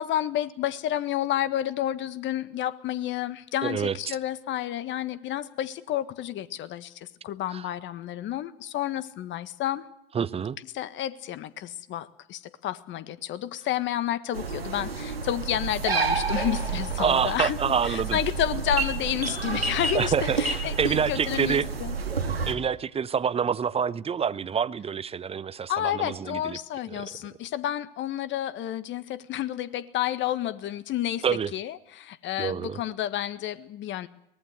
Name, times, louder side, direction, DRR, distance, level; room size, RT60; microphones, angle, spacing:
voice 1, 0.0-9.8 10.7-22.0 25.7-31.2 31.5-34.1, left 12 dB, 40° left, 1.6 m, -30 dB
voice 2, 3.6-4.2 7.5-7.6 10.1-10.6 17.0-18.2 19.9-21.7 22.5-26.6 26.9-27.0 31.2-31.5 32.4-32.8, right 7 dB, 20° right, 0.8 m, -27 dB
sound 1, 14.3-22.5, right 4 dB, 90° right, 3.2 m, -30 dB
23.5 x 19.5 x 8.0 m
hypercardioid pair, 85°, 29 cm